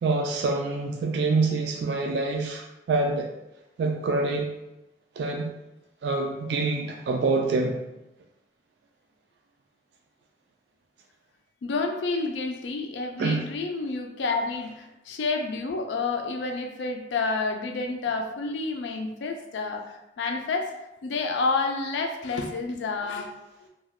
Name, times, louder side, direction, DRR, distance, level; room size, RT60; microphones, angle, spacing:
voice 1, 0.0-3.3 3.8-4.5 5.2-5.5 6.0-7.8 13.2-13.4, right 3 dB, 75° right, 2 dB, 0.3 m, -26 dB
voice 2, 11.6-20.7 21.0-23.3, left 3 dB, 85° left, 3 dB, 0.4 m, -29 dB
2.3 x 2.2 x 3.5 m, 0.92 s
head